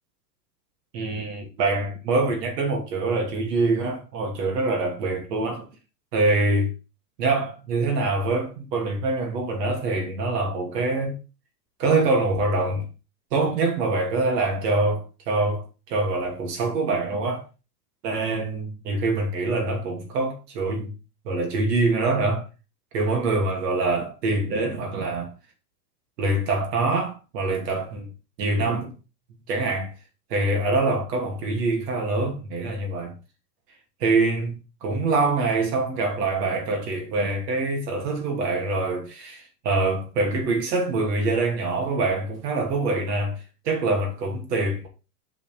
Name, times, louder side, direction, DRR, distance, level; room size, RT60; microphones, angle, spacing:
voice 1, 0.9-5.6 6.1-6.7 7.2-11.2 11.8-12.9 13.3-17.4 18.0-20.9 21.2-22.5 22.9-25.3 26.2-28.1 28.4-28.9 29.5-29.9 30.3-33.1 34.0-43.4 43.6-44.9, right 3 dB, 85° right, 2.7 m, -25 dB
5.8 x 5.1 x 5.1 m
supercardioid pair, 155°, 47 cm